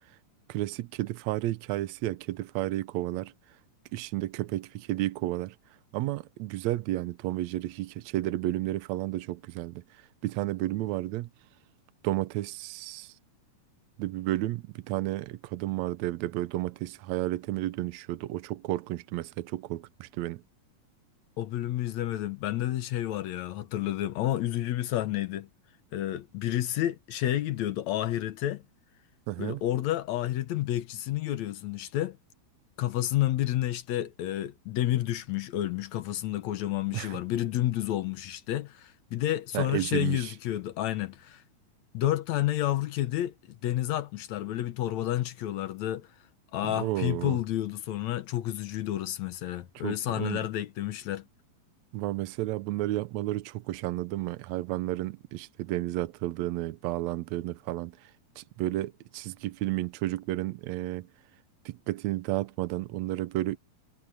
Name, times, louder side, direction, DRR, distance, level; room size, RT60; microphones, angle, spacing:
voice 1, 0.5-3.3 3.9-5.5 5.9-11.3 12.0-13.1 14.0-20.4 29.3-29.6 36.9-37.2 39.5-40.3 46.6-47.4 49.7-50.5 51.9-58.1 58.4-61.1 61.6-63.6, right 16 dB, 85° right, 1.5 m, -32 dB
voice 2, 21.4-25.5 25.9-28.6 29.4-32.2 32.8-41.4 41.9-46.1 46.5-51.2, left 13 dB, 70° left, 1.9 m, -30 dB
omnidirectional pair, 4.1 m